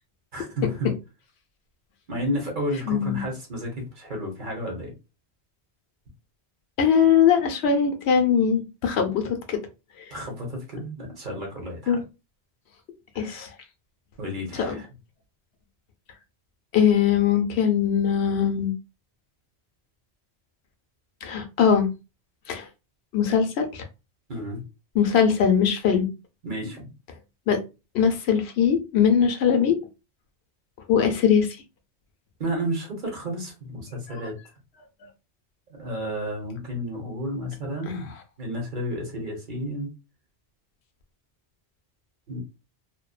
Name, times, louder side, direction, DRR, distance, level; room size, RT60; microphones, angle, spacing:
voice 1, 0.3-0.9 2.1-4.9 10.1-12.0 13.1-13.5 14.2-14.9 24.3-24.6 26.4-26.9 32.4-34.3 35.8-39.9 42.3-42.4, equal, 50° right, 0.9 m, -32 dB
voice 2, 2.9-3.2 6.8-9.6 11.9-12.0 13.2-13.5 14.5-14.8 16.7-18.7 21.2-21.9 22.5-22.7 23.1-23.8 24.9-26.1 27.5-27.6 27.9-29.8 30.9-31.5, left 7 dB, 75° left, 0.8 m, -21 dB
2.6 x 2.1 x 2.3 m
omnidirectional pair, 1.1 m